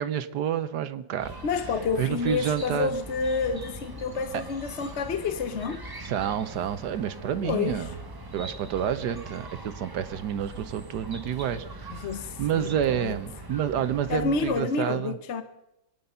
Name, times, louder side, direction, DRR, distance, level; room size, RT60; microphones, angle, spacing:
voice 1, 0.0-1.3 2.0-2.9 6.0-7.9 8.3-12.1 12.4-15.1, right 9 dB, 65° right, 1.3 m, -29 dB
Chirp tweet, 1.2-14.6, right 1 dB, 15° right, 0.7 m, -42 dB
voice 2, 1.4-5.8 7.4-7.9 11.9-13.2 14.1-15.4, left 5 dB, 50° left, 0.9 m, -29 dB
25.5 x 9.6 x 5.5 m
omnidirectional pair, 2.1 m